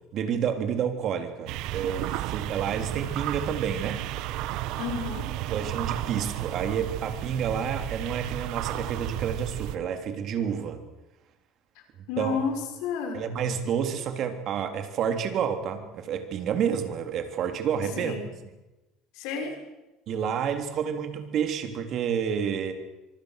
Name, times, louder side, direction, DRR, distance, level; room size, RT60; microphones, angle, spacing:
voice 1, 0.1-4.0 5.5-10.8 12.2-12.4 13.1-18.2 20.1-22.7, right 7 dB, 50° right, 7 dB, 3.5 m, -29 dB
sound 1, 1.5-9.8, right 14 dB, 65° right, 1.2 m, -33 dB
voice 2, 4.8-5.3 12.1-12.5 12.8-13.2 18.0-18.2 19.1-19.5, left 5 dB, 75° left, 4 dB, 6.1 m, -30 dB
25.0 x 24.5 x 6.7 m, 1.0 s
cardioid pair, 130°, 0 cm